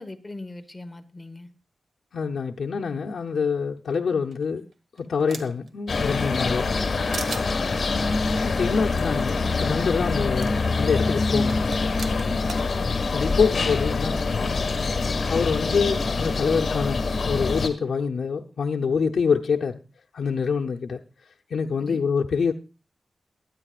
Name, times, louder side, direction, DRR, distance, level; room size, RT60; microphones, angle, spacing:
voice 1, 0.0-1.5 7.6-7.9 12.2-12.6 21.8-22.0, left 2 dB, 20° left, 1.3 m, -40 dB
voice 2, 2.1-4.7 5.0-6.7 8.4-11.6 13.1-14.5 15.3-19.8 20.1-21.0 21.5-22.5, left 5 dB, 90° left, 0.8 m, -25 dB
sound 1, 4.3-5.7 6.1-6.9 7.1-7.5 8.9-9.0 9.3-9.4 10.4-10.5 11.5-12.6, right 4 dB, 85° right, 1.5 m, -37 dB
sound 2, 5.9-17.7, left 3 dB, 55° left, 1.8 m, -25 dB
22.5 x 9.8 x 2.4 m
wide cardioid pair, 110°, 0 cm